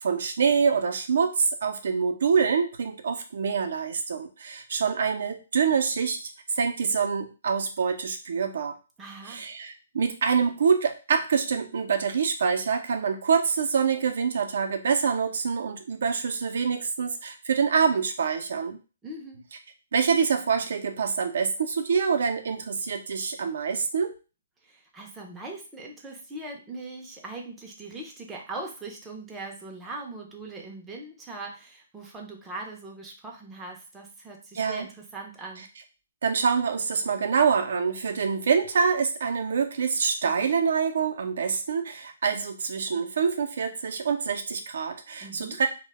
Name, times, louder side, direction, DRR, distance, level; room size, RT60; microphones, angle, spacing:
voice 1, 0.0-8.7 9.3-18.8 19.9-24.1 34.5-34.8 36.2-45.7, right 6 dB, 65° right, 5 dB, 0.4 m, -26 dB
voice 2, 9.0-9.5 19.0-19.5 24.6-35.7 45.2-45.6, right 2 dB, 10° right, 0 dB, 0.4 m, -40 dB
2.1 x 2.0 x 3.2 m, 0.33 s
hypercardioid pair, 155°, 0 cm